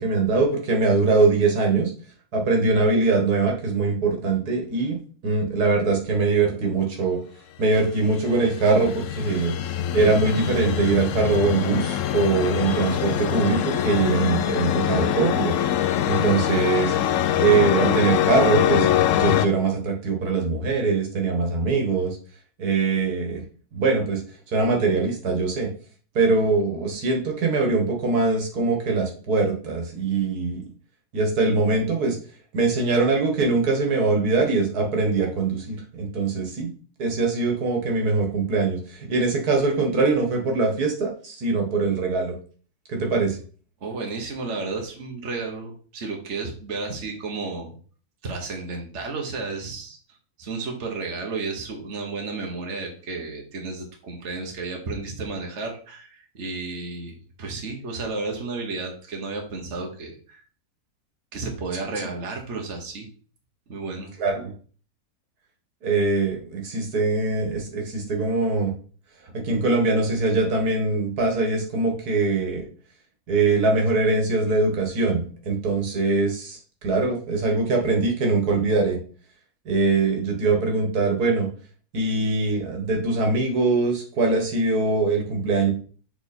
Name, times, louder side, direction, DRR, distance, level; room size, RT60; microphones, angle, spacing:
voice 1, 0.0-1.9 2.3-5.0 5.2-7.2 7.6-9.5 9.9-15.5 16.1-16.9 17.4-18.9 19.2-22.2 22.6-23.4 23.7-24.2 24.5-25.7 26.2-30.6 31.1-32.2 32.5-36.7 37.0-42.4 42.9-43.4 64.2-64.5 65.8-68.7 69.4-72.6 73.3-79.0 79.7-81.5 81.9-85.7, right 3 dB, 85° right, 2 dB, 2.1 m, -22 dB
sound 1, 7.9-19.5, left 10 dB, 70° left, 0.8 m, -24 dB
voice 2, 43.8-47.8 48.2-50.0 50.4-60.4 61.3-63.1 63.7-64.1, right 3 dB, 50° right, 1 dB, 1.6 m, -32 dB
6.7 x 4.5 x 4.3 m, 0.41 s
omnidirectional pair, 1.6 m